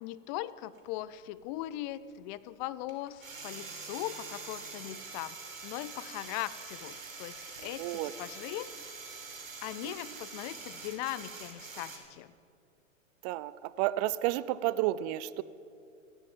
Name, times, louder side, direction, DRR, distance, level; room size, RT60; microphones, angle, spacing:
voice 1, 0.0-5.4 5.6-7.4 7.6-8.7 9.6-12.3, left 15 dB, 35° left, 17 dB, 0.6 m, -39 dB
sound 1, 0.7-0.8 2.9-12.0, right 4 dB, 85° right, 3.1 m, -45 dB
voice 2, 7.6-8.1 9.8-10.2 13.2-15.4, right 15 dB, 35° right, 17 dB, 0.5 m, -32 dB
15.5 x 10.0 x 8.8 m, 2.4 s
hypercardioid pair, 110°, 39 cm